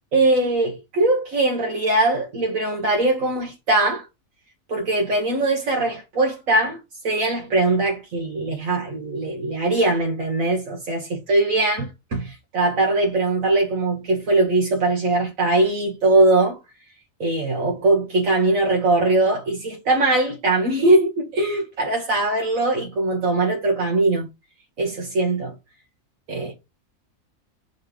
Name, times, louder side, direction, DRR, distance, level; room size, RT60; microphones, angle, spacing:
voice 1, 0.1-4.1 4.7-6.8 7.0-16.6 17.2-24.3 24.8-25.5 26.3-26.5, right 2 dB, 75° right, 1.8 m, -21 dB
6.6 x 4.2 x 5.0 m
omnidirectional pair, 1.4 m